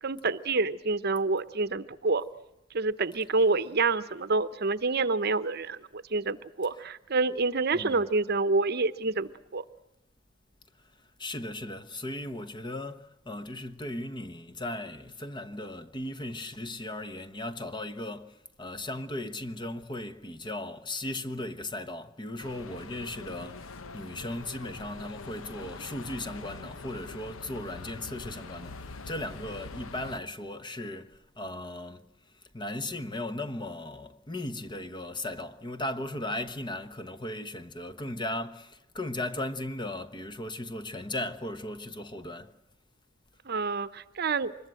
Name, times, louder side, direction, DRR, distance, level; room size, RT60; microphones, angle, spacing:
voice 1, 0.0-2.2 2.7-9.6 43.5-44.5, right 3 dB, 50° right, 0.9 m, -28 dB
voice 2, 11.2-32.1 32.5-42.5, left 1 dB, 20° left, 1.0 m, -37 dB
sound 1, 22.4-30.2, left 3 dB, 80° left, 0.9 m, -44 dB
25.0 x 21.5 x 7.7 m
head